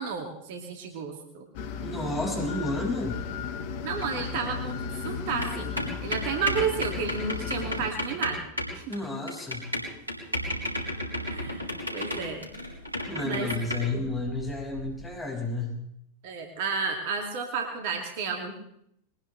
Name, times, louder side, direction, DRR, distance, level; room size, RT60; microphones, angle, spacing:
voice 1, 0.0-1.5 3.8-5.7 6.0-8.4 8.7-8.9 11.3-12.5 13.2-13.5 13.8-14.1 16.2-18.5, right 5 dB, 50° right, 3 dB, 2.5 m, -32 dB
sound 1, 1.5-7.9, left 6 dB, 50° left, 1.5 m, -35 dB
voice 2, 1.8-3.2 8.9-9.6 13.1-15.8, left 2 dB, 10° left, -1 dB, 6.0 m, -31 dB
sound 2, 4.0-4.4 4.7-4.8 5.1-5.5 5.8-15.0, left 1 dB, 85° right, 3.9 m, -33 dB
22.0 x 19.5 x 3.4 m, 0.74 s
figure-of-eight pair, 90°, 0 cm